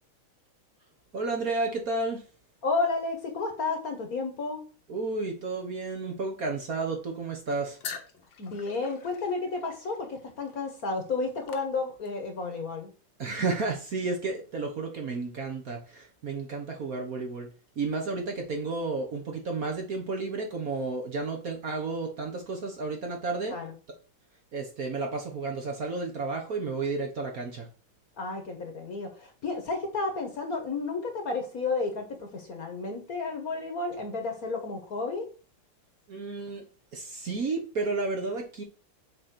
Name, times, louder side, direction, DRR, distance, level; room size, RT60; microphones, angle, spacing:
voice 1, 1.1-2.2 4.9-7.8 13.2-17.5 17.8-23.6 24.5-27.7 36.1-36.6 36.9-38.6, right 3 dB, 45° right, 2 dB, 1.5 m, -32 dB
voice 2, 2.6-4.6 8.4-12.9 23.5-23.7 28.2-35.3, left 3 dB, 45° left, 5 dB, 1.6 m, -32 dB
sound 1, 7.8-12.3, left 6 dB, 60° left, 1.7 m, -44 dB
6.5 x 4.3 x 6.0 m, 0.37 s
omnidirectional pair, 2.3 m